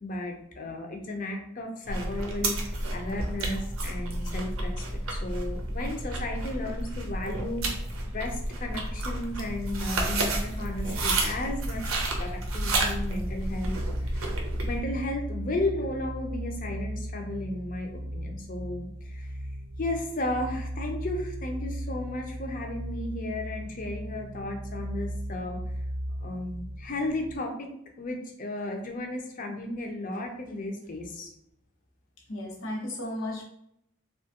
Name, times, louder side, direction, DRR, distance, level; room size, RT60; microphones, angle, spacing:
voice 1, 0.0-4.7 5.1-14.3 14.6-19.3 19.8-25.6 26.2-27.7 28.0-31.3, left 1 dB, 40° left, 2 dB, 0.5 m, -34 dB
sound 1, 1.9-14.8, right 2 dB, 90° right, 0.6 m, -31 dB
sound 2, 12.5-27.4, equal, 50° right, 0.4 m, -37 dB
voice 2, 32.3-33.4, left 1 dB, 70° left, 0 dB, 0.8 m, -34 dB
2.8 x 2.3 x 2.8 m, 0.75 s
head